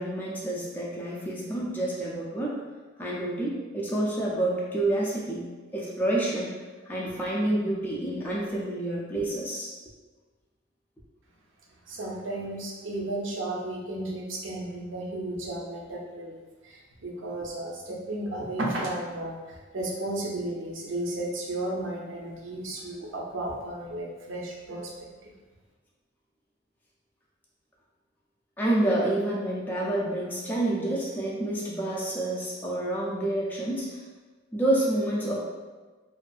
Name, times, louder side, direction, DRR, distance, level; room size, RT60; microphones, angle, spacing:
voice 1, 0.0-2.6 3.0-5.5 5.7-6.5 6.9-9.7 28.6-34.0 34.5-35.4, right 1 dB, 10° left, -5 dB, 0.3 m, -28 dB
voice 2, 11.9-24.9 25.2-25.3, right 1 dB, 70° right, -2 dB, 0.5 m, -34 dB
2.5 x 2.3 x 2.3 m, 1.3 s
head